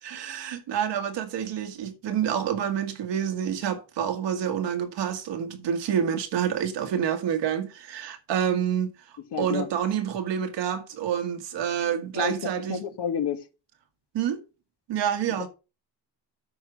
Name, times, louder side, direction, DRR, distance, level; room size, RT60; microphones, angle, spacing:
voice 1, 0.0-8.9 9.4-12.8 14.1-14.4 14.9-15.5, right 8 dB, 90° right, 1.9 m, -28 dB
voice 2, 9.3-9.7 12.1-13.4 15.4-15.5, left 8 dB, 70° left, 1.5 m, -30 dB
8.6 x 5.7 x 6.3 m
supercardioid pair, 55°, 42 cm